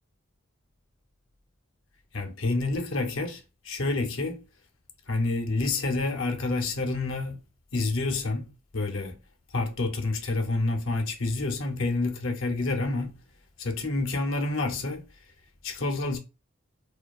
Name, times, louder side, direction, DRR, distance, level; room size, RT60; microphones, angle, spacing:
voice 1, 2.1-4.4 5.1-7.5 7.7-9.2 9.5-13.2 13.6-15.0 15.6-16.2, left 2 dB, 70° left, 0.6 m, -28 dB
2.5 x 2.2 x 2.3 m
head